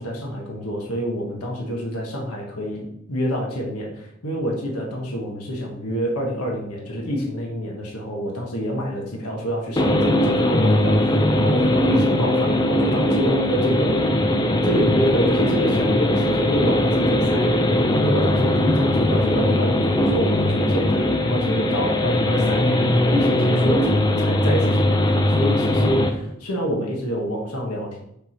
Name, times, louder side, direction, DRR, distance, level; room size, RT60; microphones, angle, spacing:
voice 1, 0.0-17.7 18.0-22.8 23.1-28.0, equal, 85° left, -1 dB, 1.4 m, -27 dB
sound 1, 9.8-26.1, left 1 dB, 20° left, 0.5 m, -20 dB
6.8 x 3.5 x 4.5 m, 0.77 s
head